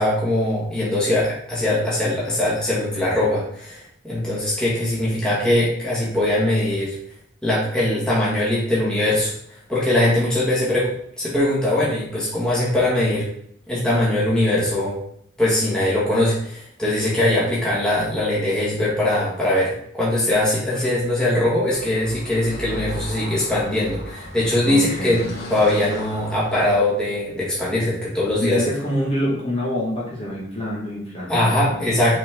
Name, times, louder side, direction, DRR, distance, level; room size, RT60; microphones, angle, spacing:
voice 1, 0.0-7.0 7.4-13.3 13.7-15.0 15.4-25.2 25.5-28.6 31.3-32.2, left 1 dB, 5° left, -8 dB, 1.9 m, -21 dB
Car passing by / Traffic noise roadway noise, 21.7-26.8, left 1 dB, 85° left, 1.6 m, -36 dB
voice 2, 24.7-25.2 28.4-32.2, equal, 30° left, -6 dB, 1.8 m, -26 dB
6.0 x 4.3 x 3.7 m, 0.68 s
head